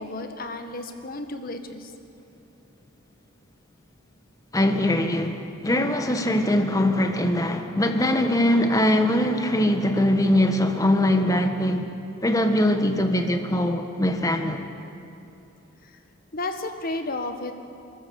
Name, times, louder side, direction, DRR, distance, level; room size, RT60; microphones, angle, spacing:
voice 1, 0.0-1.9 15.8-16.0 16.3-17.5, left 2 dB, 45° left, 7 dB, 1.5 m, -32 dB
voice 2, 4.5-11.9 12.2-14.7, left 1 dB, 15° left, 6 dB, 1.3 m, -22 dB
29.5 x 13.5 x 7.1 m, 2.9 s
head